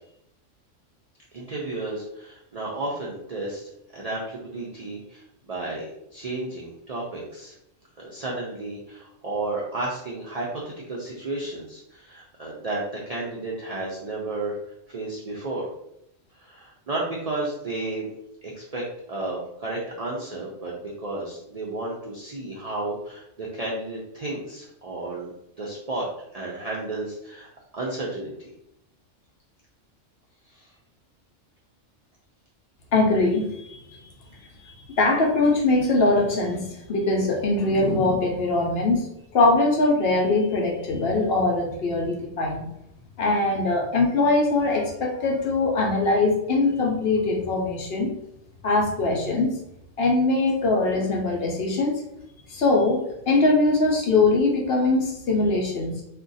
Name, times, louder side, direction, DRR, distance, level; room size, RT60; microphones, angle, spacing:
voice 1, 1.3-5.9 6.1-7.5 8.0-14.6 14.9-15.7 16.4-18.1 18.4-25.3 25.6-26.1 26.3-28.5 30.5-30.7, right 2 dB, 60° right, -4 dB, 0.4 m, -32 dB
voice 2, 32.9-33.8 35.0-36.6 36.9-39.0 39.3-42.6 43.2-48.1 48.6-49.5 50.0-52.0 52.5-53.0 53.3-56.0, left 2 dB, 60° left, 0 dB, 0.8 m, -22 dB
2.4 x 2.2 x 3.9 m, 0.80 s
omnidirectional pair, 1.3 m